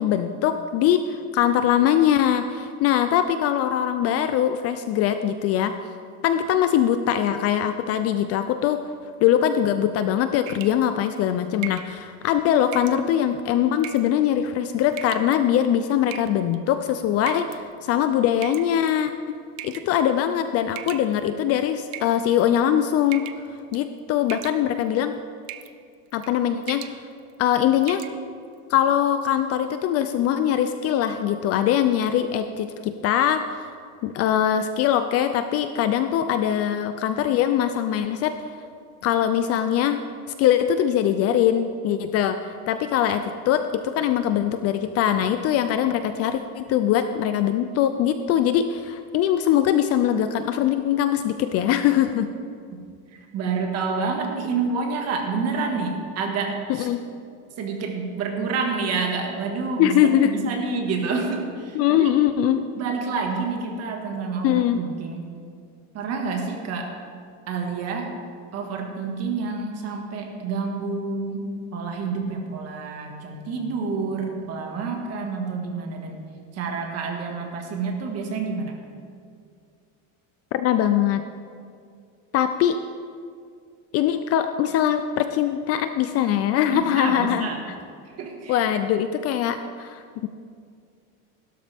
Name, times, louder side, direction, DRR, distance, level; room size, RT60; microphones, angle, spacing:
voice 1, 0.0-5.7 6.2-8.8 9.2-19.1 19.6-23.3 23.7-25.1 26.1-26.9 27.4-28.0 28.7-33.4 34.0-38.3 39.0-40.1 40.4-52.3 56.8-57.0 59.8-60.3 61.7-62.6 64.4-64.8 80.5-81.3 82.3-82.8 83.9-87.5 88.5-90.3, left 10 dB, 40° left, 9 dB, 0.4 m, -22 dB
sound 1, 10.5-10.9 11.6-11.9 12.7-13.0 13.8-14.2 14.9-15.4 16.1-16.6 17.3-17.6 18.4-19.0 19.6-19.9 20.8-21.4 21.9-22.6 23.1-23.5 23.7-24.0 24.3-24.9 25.5-25.8 26.1-26.3 26.6-27.0 27.3-27.4 27.8-28.2, right 13 dB, 80° right, 0.8 m, -37 dB
voice 2, 53.1-56.9 57.6-62.1 62.8-65.2 65.9-66.9 67.5-68.2 68.5-76.2 76.5-78.7 86.7-87.6 88.2-88.6, right 4 dB, 40° right, 2 dB, 1.8 m, -28 dB
16.0 x 12.5 x 3.5 m, 2.2 s
cardioid pair, 160°, 40 cm